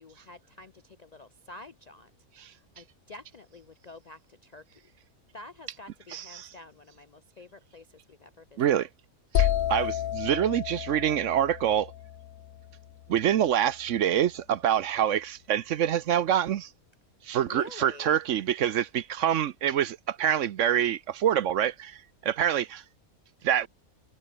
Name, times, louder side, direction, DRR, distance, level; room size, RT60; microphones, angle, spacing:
voice 1, 0.0-2.1 2.5-4.8 5.3-8.9 17.4-18.1, left 2 dB, 45° left, 0.5 m, -49 dB
voice 2, 6.1-6.5 8.6-8.9 9.3-11.9 13.1-16.7 17.2-22.8 23.4-23.7, right 10 dB, 65° right, 1.0 m, -26 dB
sound 1, 9.3-13.1, left 11 dB, 75° left, 1.2 m, -30 dB
omnidirectional pair, 1.5 m